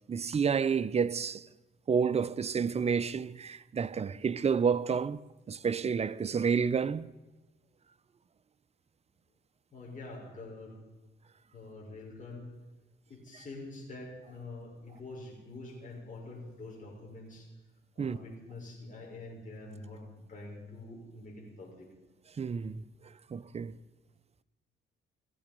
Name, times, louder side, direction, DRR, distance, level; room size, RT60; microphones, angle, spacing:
voice 1, 0.1-1.5 1.9-5.2 5.5-7.1 18.0-18.2 22.4-22.8 23.3-23.7, right 6 dB, 30° right, 0.6 m, -29 dB
voice 2, 9.7-10.8 11.5-12.5 13.1-17.5 17.9-20.0 20.3-21.9, left 2 dB, 40° left, 5.7 m, -46 dB
17.0 x 15.5 x 5.3 m
cardioid pair, 90°, 20 cm